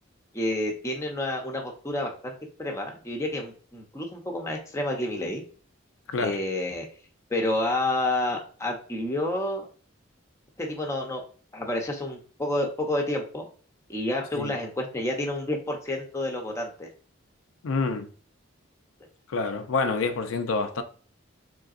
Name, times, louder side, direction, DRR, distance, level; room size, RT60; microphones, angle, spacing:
voice 1, 0.3-2.3 2.6-5.4 6.2-6.9 7.3-9.7 10.6-11.2 11.5-13.4 13.9-16.9, left 1 dB, 15° left, 0.7 m, -29 dB
voice 2, 17.6-18.1 19.3-20.8, left 4 dB, 75° left, 0.4 m, -27 dB
3.8 x 3.3 x 2.4 m
head